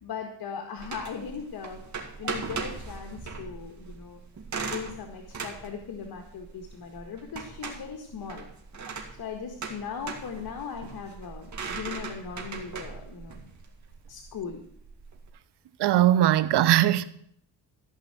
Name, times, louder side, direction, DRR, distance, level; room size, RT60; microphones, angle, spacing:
voice 1, 0.0-1.8 2.2-4.2 4.6-8.5 9.2-13.4 14.1-14.6, left 6 dB, 65° left, 1.7 m, -38 dB
sound 1, 0.8-15.3, right 5 dB, 45° right, 2.5 m, -39 dB
voice 2, 15.8-17.0, right 13 dB, 85° right, 0.9 m, -20 dB
14.5 x 5.6 x 8.9 m
cardioid pair, 100°, 39 cm